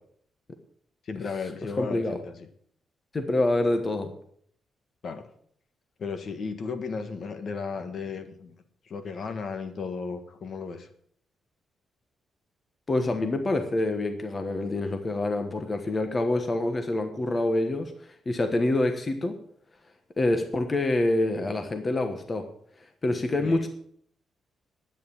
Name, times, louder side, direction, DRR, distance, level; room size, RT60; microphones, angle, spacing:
voice 1, 1.0-2.5 5.0-5.3 6.0-8.5 8.8-10.9 23.4-23.6, left 5 dB, 50° left, 8 dB, 1.5 m, -35 dB
voice 2, 1.8-2.2 3.1-4.1 12.9-19.4 20.2-22.4 23.0-23.7, left 2 dB, 25° left, 6 dB, 1.2 m, -26 dB
10.5 x 9.2 x 7.1 m, 0.63 s
cardioid pair, 140°, 0 cm